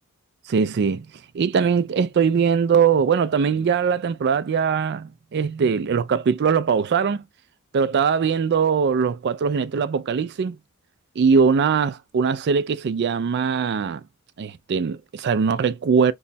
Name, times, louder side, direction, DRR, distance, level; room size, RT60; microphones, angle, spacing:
voice 1, 0.5-1.1 1.3-7.2 7.7-10.6 11.2-14.0 14.4-16.1, right 6 dB, 50° right, 0.3 m, -21 dB
3.1 x 2.2 x 4.0 m
head